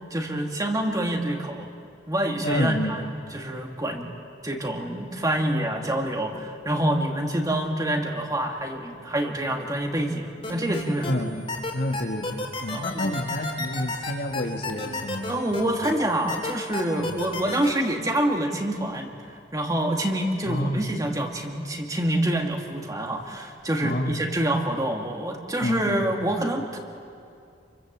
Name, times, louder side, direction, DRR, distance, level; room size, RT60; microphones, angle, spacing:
voice 1, 0.1-1.7 2.1-3.0 3.3-4.1 4.4-11.2 12.7-13.2 15.3-19.1 19.5-26.8, right 1 dB, 20° right, 2 dB, 2.2 m, -26 dB
voice 2, 2.4-3.1 11.1-15.8 17.1-17.2 20.5-20.9 23.8-24.2 25.6-26.0, left 1 dB, 60° left, 4 dB, 1.8 m, -29 dB
sound 1, 10.4-11.1 11.5-15.9 16.3-17.7, left 2 dB, 30° left, 3.4 m, -31 dB
28.0 x 24.5 x 7.5 m, 2.4 s
head